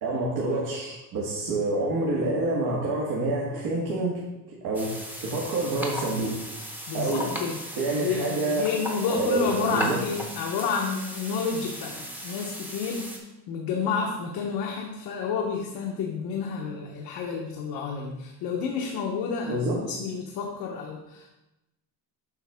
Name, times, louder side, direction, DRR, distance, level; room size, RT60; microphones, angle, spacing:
voice 1, 0.0-4.2 4.6-6.3 6.9-7.3 7.7-8.7 9.1-10.0 19.5-19.8, right 2 dB, 80° right, -5 dB, 1.8 m, -27 dB
sound 1, 4.7-13.2, equal, 5° right, 0.7 m, -36 dB
voice 2, 6.9-7.6 8.0-13.1 13.5-21.3, left 5 dB, 90° left, -1 dB, 1.0 m, -30 dB
8.1 x 5.8 x 3.5 m, 0.95 s
cardioid pair, 180°, 36 cm